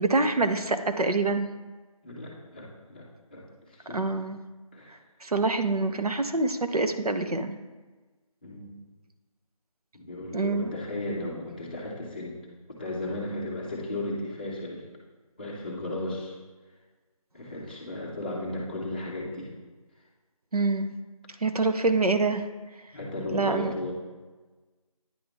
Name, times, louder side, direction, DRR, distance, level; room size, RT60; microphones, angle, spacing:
voice 1, 0.0-1.5 3.9-4.4 5.2-7.6 10.3-10.7 20.5-20.9 21.4-22.4 23.3-23.7, right 3 dB, 90° right, 8 dB, 0.8 m, -25 dB
voice 2, 2.0-4.0 4.7-5.0 8.4-8.8 9.9-12.4 12.8-14.8 15.4-16.3 17.3-19.5 22.9-23.9, left 1 dB, 15° left, -5 dB, 0.9 m, -35 dB
9.5 x 5.1 x 3.5 m, 1.3 s
figure-of-eight pair, 170°, 19 cm